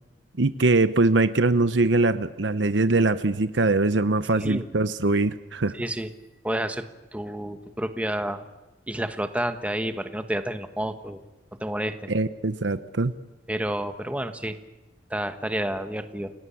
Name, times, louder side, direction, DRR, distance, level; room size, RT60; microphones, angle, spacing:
voice 1, 0.4-5.7 12.1-13.1, right 2 dB, 85° right, 12 dB, 0.9 m, -22 dB
voice 2, 4.3-4.6 5.7-6.1 6.4-6.9 7.1-8.5 8.9-11.2 11.6-11.9 13.5-14.6 15.1-16.3, right 1 dB, 10° right, 8 dB, 1.3 m, -29 dB
29.5 x 18.5 x 8.6 m, 1.1 s
head